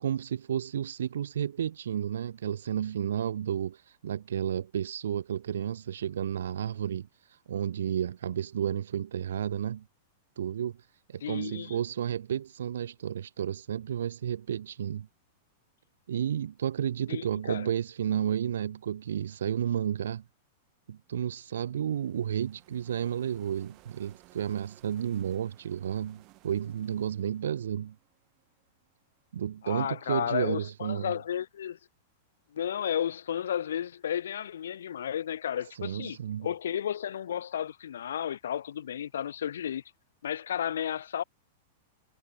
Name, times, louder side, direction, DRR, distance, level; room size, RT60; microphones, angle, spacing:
voice 1, 0.0-9.8 10.4-10.7 11.1-15.1 16.1-20.2 20.9-28.0 29.3-31.1 35.7-36.5, right 9 dB, 85° right, 0.7 m, -32 dB
voice 2, 11.2-11.8 17.1-17.7 29.6-31.8 32.5-39.8 40.2-41.2, left 9 dB, 85° left, 0.4 m, -33 dB
sound 1, 21.0-29.0, right 23 dB, 45° right, 3.7 m, -60 dB
hypercardioid pair, 125°, 0 cm